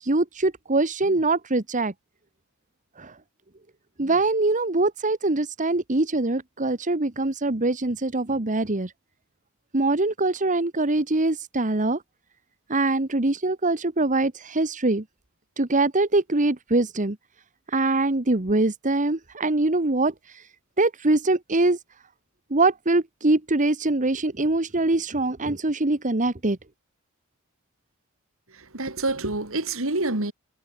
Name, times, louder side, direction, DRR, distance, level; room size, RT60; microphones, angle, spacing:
voice 1, 0.0-1.9 3.0-3.2 4.0-8.9 9.7-12.0 12.7-15.0 15.6-17.2 17.7-20.5 20.8-21.8 22.5-26.6, right 2 dB, 35° right, 1.4 m, -23 dB
voice 2, 28.5-30.3, right 2 dB, 65° right, 3.6 m, -27 dB
head